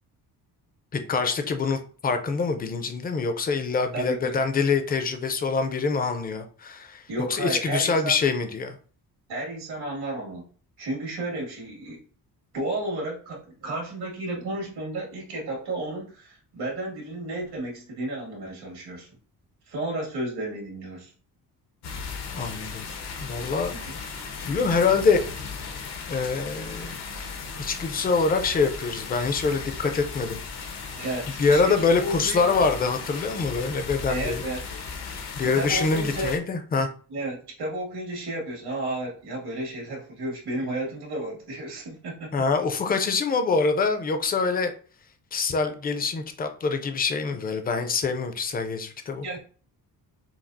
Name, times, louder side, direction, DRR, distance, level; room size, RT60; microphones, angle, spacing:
voice 1, 0.9-8.8 22.3-22.9 23.2-23.7 24.4-25.2 26.1-27.0 27.6-30.4 31.4-34.4 35.4-36.9 42.3-44.7 45.3-49.4, left 4 dB, 25° left, 7 dB, 0.4 m, -25 dB
voice 2, 3.9-4.4 7.1-8.2 9.3-10.5 10.8-12.0 12.5-19.1 19.7-21.1 23.7-24.0 31.0-32.6 34.1-34.6 35.4-36.3 37.1-42.3 49.2-49.4, right 1 dB, 80° right, -2 dB, 2.0 m, -32 dB
sound 1, 21.8-36.4, left 5 dB, 90° left, 0.9 m, -36 dB
5.8 x 2.3 x 2.5 m, 0.42 s
wide cardioid pair, 175°, 38 cm